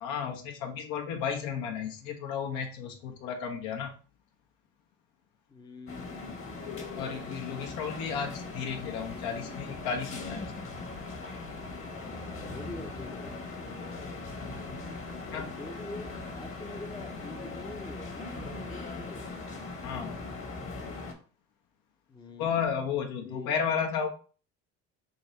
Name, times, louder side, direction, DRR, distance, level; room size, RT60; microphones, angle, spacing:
voice 1, 0.0-3.9 7.0-10.7 15.3-15.5 19.8-20.2 22.4-24.1, left 7 dB, 70° left, 3 dB, 1.0 m, -33 dB
voice 2, 5.5-6.8 11.8-13.5 15.3-19.4 22.1-22.6 23.2-23.5, left 2 dB, 10° left, 4 dB, 0.6 m, -45 dB
sound 1, 5.9-21.1, left 3 dB, 35° left, 1.2 m, -40 dB
3.8 x 2.6 x 4.3 m, 0.37 s
hypercardioid pair, 80°, 37 cm